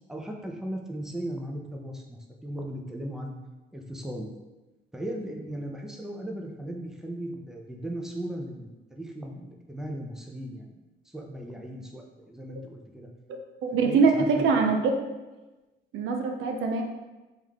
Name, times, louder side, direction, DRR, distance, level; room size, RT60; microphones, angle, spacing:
voice 1, 0.1-3.4 3.7-4.3 4.9-10.7 11.1-13.1 13.8-14.3 14.5-14.7, right 1 dB, ahead, 1 dB, 0.6 m, -37 dB
voice 2, 13.6-15.0 15.9-16.8, right 4 dB, 85° right, 3 dB, 0.6 m, -23 dB
3.6 x 3.1 x 3.6 m, 1.1 s
cardioid pair, 90°, 20 cm